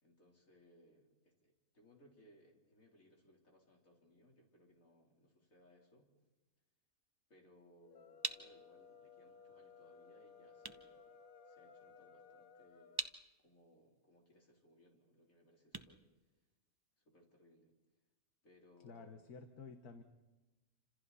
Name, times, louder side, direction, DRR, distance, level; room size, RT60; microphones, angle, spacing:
voice 1, 0.0-6.1 7.3-11.2 11.4-13.1 13.4-16.0 17.0-17.7 18.4-19.2, equal, 60° left, -1 dB, 4.2 m, -67 dB
sound 1, 7.8-13.1, left 5 dB, 40° left, 0.9 m, -60 dB
sound 2, 7.8-17.0, right 3 dB, 20° right, 0.7 m, -49 dB
voice 2, 18.8-20.0, left 4 dB, 85° left, 6 dB, 1.8 m, -52 dB
29.0 x 26.5 x 4.2 m, 1.1 s
omnidirectional pair, 1.6 m